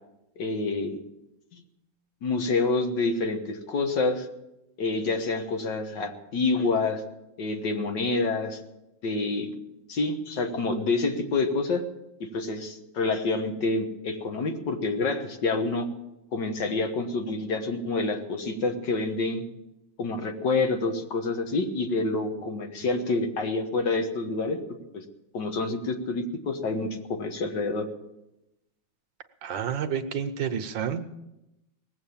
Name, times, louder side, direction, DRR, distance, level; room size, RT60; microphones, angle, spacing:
voice 1, 0.4-1.0 1.5-1.6 2.2-4.3 4.8-7.0 7.4-8.6 9.0-9.5 9.9-11.8 12.2-15.9 16.3-19.4 20.0-24.6 24.9-25.0 25.3-27.9, left 3 dB, 65° left, 5 dB, 1.9 m, -27 dB
voice 2, 29.4-31.0, right 8 dB, 70° right, 8 dB, 1.5 m, -29 dB
19.5 x 8.0 x 7.2 m, 0.93 s
omnidirectional pair, 2.2 m